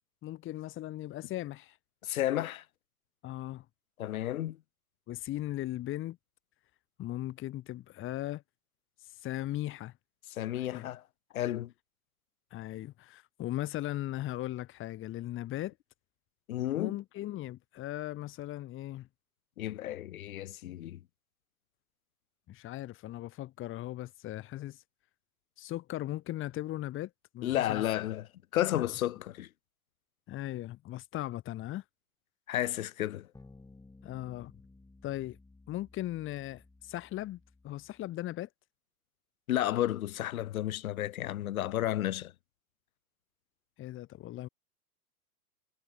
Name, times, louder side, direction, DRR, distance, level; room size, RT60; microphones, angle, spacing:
voice 1, 0.2-1.8 3.2-3.7 5.1-6.2 7.0-8.4 9.2-9.9 10.6-10.9 12.5-15.7 16.7-19.1 22.5-24.8 25.6-27.8 28.7-28.9 30.3-31.8 34.0-34.5 35.0-35.4 35.7-37.4 37.6-38.5 43.8-44.5, left 14 dB, 25° left, 1.8 m, -38 dB
voice 2, 2.0-2.6 4.0-4.6 10.3-11.0 11.3-11.7 16.5-17.0 19.6-21.0 27.4-29.5 32.5-33.3 39.5-42.3, left 13 dB, 65° left, 2.1 m, -32 dB
sound 1, 33.3-38.1, left 3 dB, 5° left, 6.8 m, -57 dB
hypercardioid pair, 120°, 44 cm